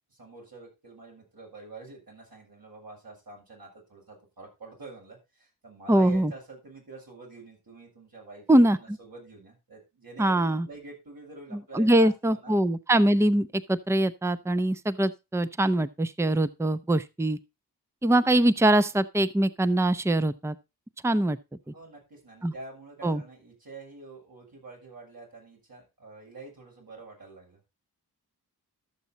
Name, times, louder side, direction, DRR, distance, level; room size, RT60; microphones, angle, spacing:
voice 1, 0.1-12.5 21.7-27.6, right 2 dB, 65° right, 7.1 m, -46 dB
voice 2, 5.9-6.3 8.5-9.0 10.2-10.7 11.7-17.4 18.0-20.6 21.0-21.4 22.4-22.5 23.0-23.2, right 1 dB, 5° right, 0.7 m, -23 dB
13.0 x 7.1 x 4.0 m
cardioid pair, 50°, 38 cm